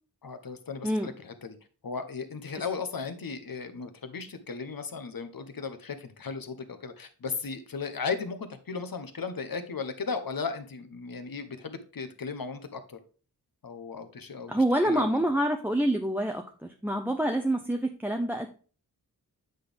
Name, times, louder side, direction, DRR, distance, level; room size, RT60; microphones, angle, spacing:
voice 1, 0.2-1.6 1.8-13.0 13.6-15.1, left 5 dB, 60° left, 9 dB, 1.0 m, -36 dB
voice 2, 0.8-1.1 14.5-18.5, right 1 dB, 5° right, 4 dB, 0.6 m, -27 dB
8.0 x 4.0 x 3.4 m, 0.39 s
cardioid pair, 45°, 39 cm